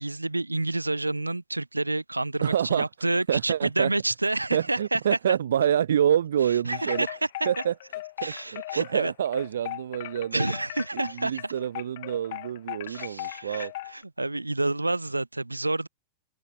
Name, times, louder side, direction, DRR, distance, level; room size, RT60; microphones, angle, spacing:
voice 1, 0.0-5.4 6.4-7.2 8.2-9.1 10.3-11.5 12.9-15.9, right 2 dB, 85° right, 1.1 m, -29 dB
voice 2, 2.4-2.9 3.3-3.9 4.5-7.1 7.5-7.7 8.2-10.5 10.9-13.7, right 9 dB, 65° right, 0.4 m, -27 dB
Wind chime, 6.6-14.0, left 17 dB, 55° left, 2.3 m, -37 dB
figure-of-eight pair, 90°, 0 cm